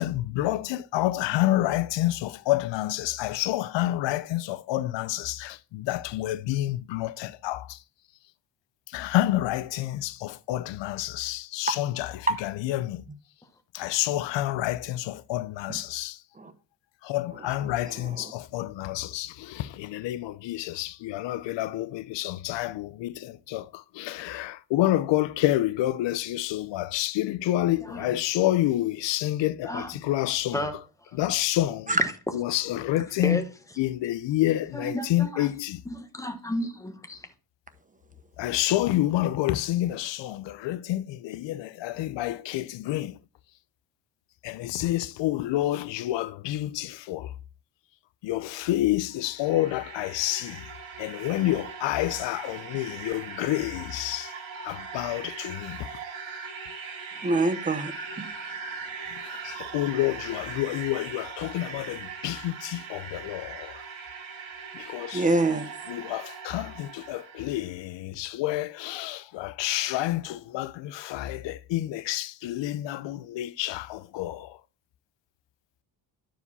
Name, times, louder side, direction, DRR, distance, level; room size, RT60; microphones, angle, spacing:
voice 1, 0.0-7.8 8.9-13.0 13.7-16.2 17.0-30.6 31.2-32.0 32.3-33.4 33.8-35.8 38.4-43.2 44.4-47.3 48.2-50.7 51.0-54.3 54.6-55.8 59.1-63.8 64.7-65.3 65.9-74.6, left 15 dB, 70° left, 0.6 m, -28 dB
voice 2, 27.8-28.2 29.6-30.0 30.5-31.2 32.0-32.3 33.2-33.8 34.7-35.5 35.8-37.3, left 1 dB, 5° left, 1.2 m, -34 dB
sound 1, 49.0-67.7, right 5 dB, 90° right, 2.4 m, -40 dB
voice 3, 57.2-57.9 58.2-58.3 65.1-65.7, right 2 dB, 15° right, 0.8 m, -24 dB
11.5 x 4.9 x 4.1 m
cardioid pair, 125°, 45 cm